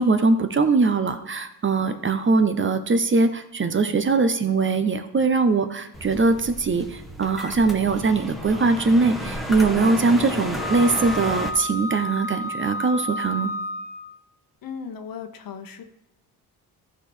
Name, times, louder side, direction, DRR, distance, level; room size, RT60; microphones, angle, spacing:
voice 1, 0.0-13.5, right 3 dB, 30° right, 9 dB, 0.8 m, -21 dB
sound 1, 5.9-11.5, equal, ahead, 1.4 m, -33 dB
Wind instrument woodwind instrument, 10.6-14.2, left 1 dB, 75° left, 1.2 m, -31 dB
voice 2, 14.6-15.8, left 6 dB, 55° left, 7 dB, 1.2 m, -36 dB
14.5 x 4.9 x 4.5 m, 0.88 s
cardioid pair, 95°, 40 cm